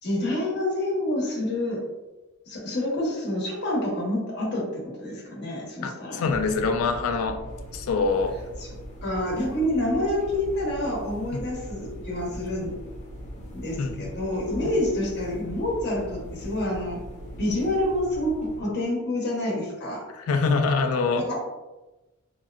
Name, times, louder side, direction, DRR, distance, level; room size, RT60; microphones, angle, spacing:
voice 1, 0.0-1.8 2.5-6.2 9.0-12.8 13.5-17.0 17.4-20.0 21.1-21.3, left 1 dB, 55° left, -2 dB, 0.9 m, -28 dB
voice 2, 5.8-7.4 7.7-8.4 11.3-11.4 13.8-14.0 20.1-21.3, left 4 dB, 85° left, 7 dB, 0.3 m, -25 dB
sound 1, 6.2-18.6, equal, 35° left, 0.5 m, -40 dB
3.4 x 2.6 x 2.3 m, 1.1 s
head